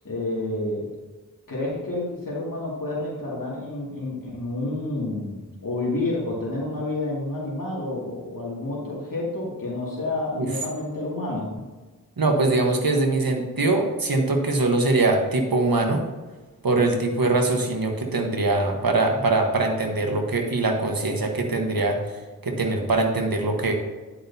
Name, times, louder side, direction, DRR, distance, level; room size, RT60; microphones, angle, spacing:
voice 1, 0.0-0.9 1.5-5.3 5.6-11.5, left 2 dB, 65° left, -6 dB, 2.4 m, -29 dB
voice 2, 12.2-16.0 16.6-23.7, right 2 dB, 80° right, 3 dB, 1.3 m, -22 dB
10.0 x 8.4 x 2.8 m, 1.3 s
wide cardioid pair, 45°, 35 cm